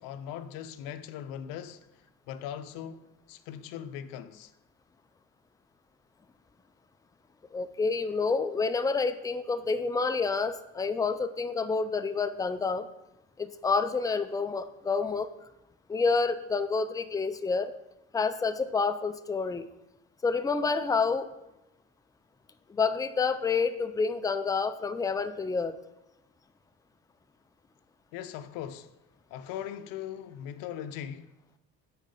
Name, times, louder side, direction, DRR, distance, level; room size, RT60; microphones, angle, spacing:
voice 1, 0.0-1.8 2.3-4.5 28.1-28.9 29.3-31.3, left 9 dB, 85° left, 0.6 m, -40 dB
voice 2, 7.5-12.9 13.4-15.3 15.9-17.7 18.1-19.7 20.2-21.3 22.7-25.8, left 4 dB, 10° left, 0.4 m, -28 dB
8.8 x 4.2 x 5.4 m
supercardioid pair, 80°, 33 cm